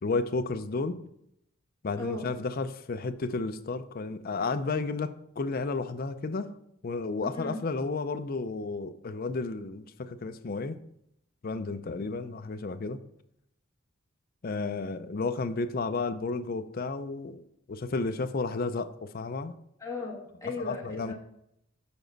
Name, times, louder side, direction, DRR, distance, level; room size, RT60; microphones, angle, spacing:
voice 1, 0.0-1.0 1.8-6.5 6.8-10.8 11.4-13.0 14.4-17.4 17.7-19.5 20.6-21.1, left 3 dB, 45° left, 10 dB, 0.5 m, -32 dB
voice 2, 2.0-2.3 7.3-7.6 19.8-21.1, left 3 dB, 15° left, -2 dB, 1.5 m, -36 dB
7.1 x 5.0 x 4.0 m, 0.76 s
head